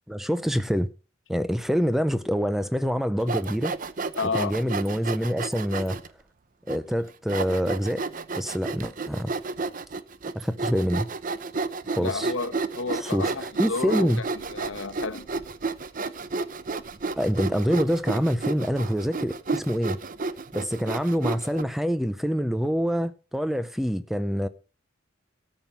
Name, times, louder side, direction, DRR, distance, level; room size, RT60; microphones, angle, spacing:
voice 1, 0.1-0.9 1.3-3.7 4.3-6.0 6.7-8.0 8.4-9.3 10.3-11.1 11.9-12.3 12.9-14.2 17.2-20.0 20.5-24.5, equal, ahead, 0.5 m, -26 dB
Sawing, 3.2-6.1 6.7-6.8 7.3-21.6, right 3 dB, 40° right, 0.6 m, -31 dB
voice 2, 4.1-4.5 12.0-15.3, left 4 dB, 75° left, 1.1 m, -31 dB
13.5 x 5.4 x 7.3 m
head